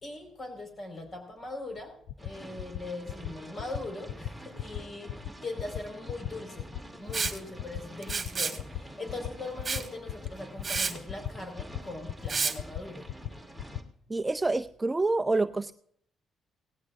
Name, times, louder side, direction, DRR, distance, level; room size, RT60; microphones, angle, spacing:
voice 1, 0.0-6.7 7.0-13.1, left 2 dB, 40° left, 4 dB, 4.6 m, -41 dB
sound 1, 1.8-1.9 2.1-2.3 2.6-2.8 3.1-3.3 3.6-3.8 4.1-4.3 4.6-4.8 5.1-5.3 5.6-5.8 6.1-6.3 6.6-6.8 7.1-7.3 7.6-7.8 8.1-8.3 8.6-8.8 9.1-9.3 9.6-9.8 10.1-10.3 10.6-10.8 11.1-11.3 11.6-11.8 12.1-12.3 12.6-12.8 13.1-13.3 13.6-13.8, left 13 dB, 75° left, 0.5 m, -36 dB
sound 2, 2.2-13.8, right 1 dB, 5° left, 2.2 m, -48 dB
Liquid, 7.1-7.4 8.0-8.6 9.6-9.9 10.3-10.4 10.6-10.9 12.3-12.5, right 5 dB, 35° right, 1.6 m, -30 dB
voice 2, 14.1-15.7, right 2 dB, 20° right, 10 dB, 0.5 m, -27 dB
17.5 x 16.0 x 2.5 m, 0.65 s
cardioid pair, 90°, 0 cm